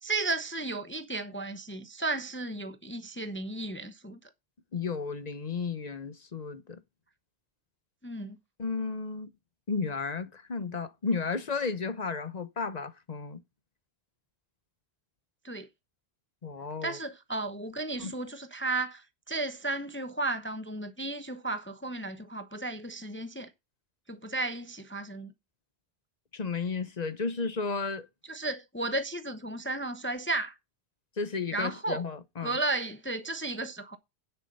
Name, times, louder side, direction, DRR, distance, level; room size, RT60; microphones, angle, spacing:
voice 1, 0.0-4.2 8.0-8.4 15.4-15.7 16.8-23.5 24.1-25.3 28.3-30.5 31.5-32.0 32.4-34.0, right 2 dB, 10° left, 0.8 m, -34 dB
voice 2, 4.7-6.8 8.6-9.3 9.7-13.4 16.4-17.0 18.0-18.1 26.3-28.1 31.2-32.6, left 4 dB, 45° left, 1.0 m, -33 dB
9.9 x 6.9 x 5.4 m
omnidirectional pair, 1.1 m